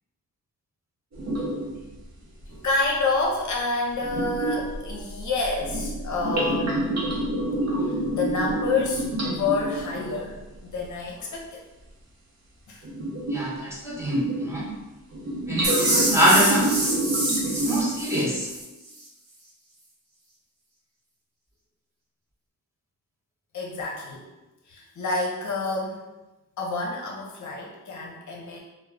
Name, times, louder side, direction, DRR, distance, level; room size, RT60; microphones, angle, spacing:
sound 1, 1.1-1.8 2.4-2.6 4.0-10.3 12.8-13.6 13.9-14.7 15.1-18.0, right 1 dB, 50° right, 0.7 m, -28 dB
voice 1, 2.6-7.0 7.8-11.6 12.7-12.8 23.5-24.2 24.7-26.0 26.6-28.6, left 3 dB, 60° left, -2 dB, 0.6 m, -28 dB
voice 2, 13.3-14.7 15.5-16.7 17.5-18.5, equal, 10° right, -7 dB, 0.6 m, -24 dB
sound 2, 15.6-18.6, right 1 dB, 85° right, 0.7 m, -26 dB
2.3 x 2.1 x 3.2 m, 1.0 s
wide cardioid pair, 120°, 34 cm